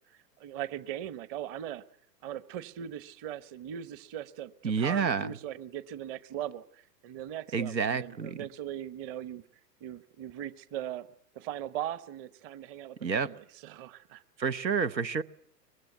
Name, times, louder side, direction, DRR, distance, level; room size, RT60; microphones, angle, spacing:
voice 1, 0.1-1.8 2.2-9.4 9.8-11.1 11.3-14.2, right 11 dB, 25° right, 17 dB, 1.0 m, -39 dB
voice 2, 4.6-5.3 7.5-8.4 13.0-13.3 14.4-15.2, right 6 dB, 90° right, 15 dB, 1.0 m, -29 dB
23.5 x 20.5 x 9.3 m, 0.67 s
figure-of-eight pair, 110°, 50 cm